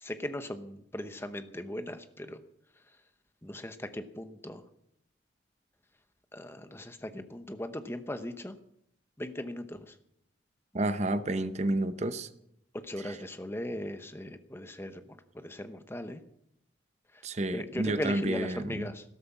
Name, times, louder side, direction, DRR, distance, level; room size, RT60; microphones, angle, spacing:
voice 1, 0.0-2.4 3.4-4.6 6.3-8.6 9.2-9.9 12.8-15.0 15.3-16.2 17.5-19.0, left 1 dB, 15° left, 9 dB, 0.9 m, -38 dB
voice 2, 10.7-12.3 13.0-13.2 17.2-18.9, right 1 dB, 35° right, 12 dB, 0.8 m, -30 dB
13.5 x 12.5 x 6.0 m, 0.77 s
head